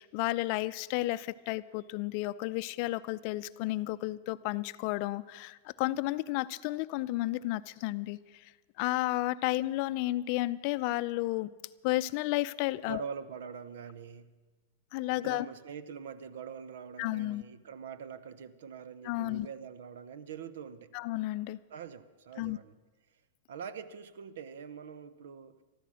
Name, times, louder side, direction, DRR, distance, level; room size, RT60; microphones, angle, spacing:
voice 1, 0.0-8.5 8.8-11.5 11.8-13.0 14.9-15.5 17.0-17.4 19.0-19.5 20.9-21.6 22.4-22.6, left 18 dB, 50° left, 15 dB, 0.5 m, -32 dB
voice 2, 12.9-14.3 15.1-20.9 21.7-22.7 23.5-25.6, right 7 dB, 75° right, 15 dB, 0.8 m, -44 dB
14.0 x 13.5 x 6.3 m, 1.3 s
hypercardioid pair, 115°, 0 cm